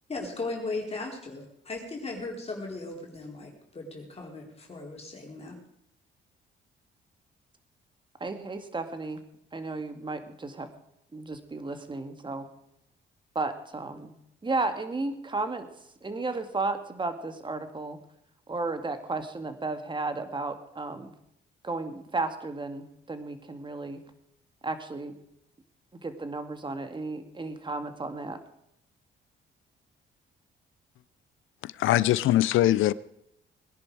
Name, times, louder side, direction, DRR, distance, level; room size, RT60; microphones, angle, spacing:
voice 1, 0.1-5.6, left 3 dB, 30° left, 4.2 m, -37 dB
voice 2, 8.2-9.2 9.5-10.7 11.1-12.5 13.4-14.1 14.4-15.7 16.0-18.0 18.5-21.1 21.6-24.0 24.6-25.1 26.0-28.4, right 3 dB, 25° right, 2.1 m, -33 dB
voice 3, 31.6-32.9, left 14 dB, 85° left, 0.7 m, -22 dB
20.5 x 10.5 x 4.9 m
cardioid pair, 90°, 20 cm